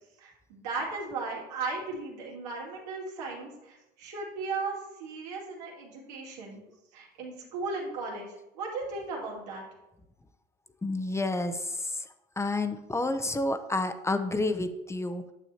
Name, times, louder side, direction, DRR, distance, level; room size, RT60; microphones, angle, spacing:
voice 1, 0.2-6.6 6.9-9.7, right 3 dB, 85° right, -2 dB, 2.5 m, -36 dB
voice 2, 10.8-11.9 12.4-15.2, left 2 dB, 15° left, 8 dB, 0.6 m, -29 dB
9.2 x 7.0 x 2.9 m, 0.92 s
supercardioid pair, 95°, 21 cm